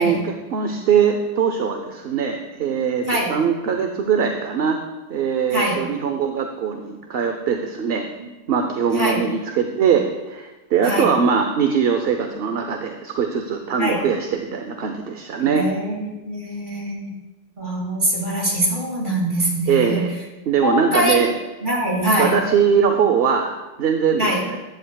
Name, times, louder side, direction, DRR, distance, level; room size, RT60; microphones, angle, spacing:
voice 1, 0.0-4.8 5.1-8.1 8.5-15.7 19.7-20.1 20.5-21.3 22.2-23.5 23.8-24.6, right 6 dB, 60° right, 5 dB, 0.9 m, -21 dB
voice 2, 15.4-17.1 17.6-20.1 20.6-21.2 21.6-22.4 24.2-24.4, right 1 dB, 45° right, -2 dB, 2.5 m, -23 dB
15.0 x 10.5 x 2.3 m, 1.1 s
omnidirectional pair, 1.1 m